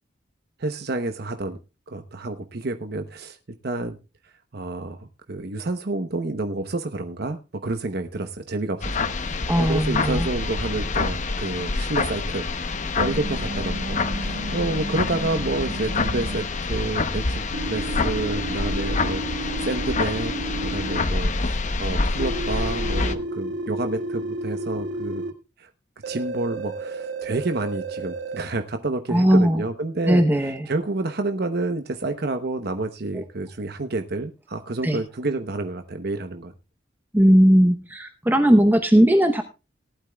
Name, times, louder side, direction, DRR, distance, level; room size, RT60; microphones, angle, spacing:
voice 1, 0.6-1.6 1.9-3.4 3.6-4.0 4.5-20.3 20.6-25.2 25.6-25.7 26.0-36.5, right 2 dB, 55° right, 7 dB, 0.9 m, -29 dB
sound 1, 8.8-23.1, left 3 dB, 40° left, 0.9 m, -27 dB
voice 2, 9.5-10.3 29.1-29.6 30.1-30.7 33.1-33.2 34.8-35.0 37.1-39.4, equal, 10° right, 6 dB, 0.9 m, -18 dB
sound 2, 13.0-16.5 17.5-21.0 22.2-25.3 26.0-28.4, right 2 dB, 80° right, 1.8 m, -32 dB
18.5 x 12.0 x 2.3 m, 0.30 s
head